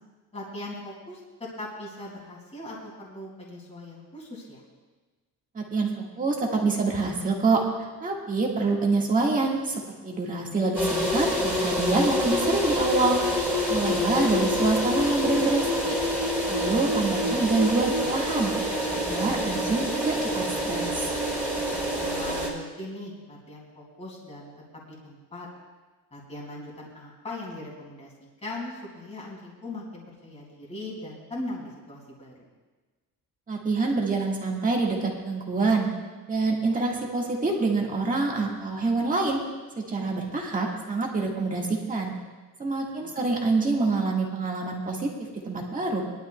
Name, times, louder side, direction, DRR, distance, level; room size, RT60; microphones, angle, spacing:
voice 1, 0.3-4.6 22.0-24.5 24.9-25.5 26.1-28.1 28.4-32.5 42.9-43.1, left 1 dB, 15° left, -4 dB, 2.8 m, -39 dB
voice 2, 5.5-5.9 6.2-13.2 13.7-16.0 16.5-18.5 18.9-21.1 33.5-35.9 36.3-39.4 39.8-42.1 42.6-46.0, right 3 dB, 20° right, -1 dB, 1.7 m, -26 dB
sound 1, 10.7-22.5, left 1 dB, 5° right, 3.9 m, -27 dB
22.0 x 12.0 x 2.3 m, 1.3 s
cardioid pair, 180°, 37 cm